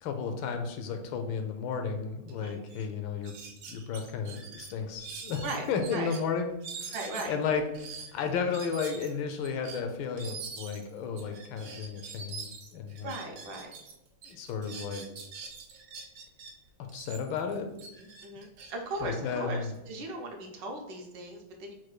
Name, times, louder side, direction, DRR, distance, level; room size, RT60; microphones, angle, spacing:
voice 1, 0.0-3.4 3.7-6.9 7.3-7.6 8.1-13.1 14.3-15.1 16.9-17.7 19.0-19.7, left 6 dB, 80° left, 6 dB, 1.3 m, -33 dB
sound 1, 2.3-2.4 2.7-2.9 3.2-6.2 6.6-13.9 14.2-16.5 16.9-19.8, right 5 dB, 90° right, 1.6 m, -44 dB
voice 2, 6.9-7.3 13.0-13.7 18.0-21.7, right 2 dB, 70° right, 2 dB, 1.2 m, -38 dB
4.5 x 2.2 x 4.7 m, 0.87 s
omnidirectional pair, 2.2 m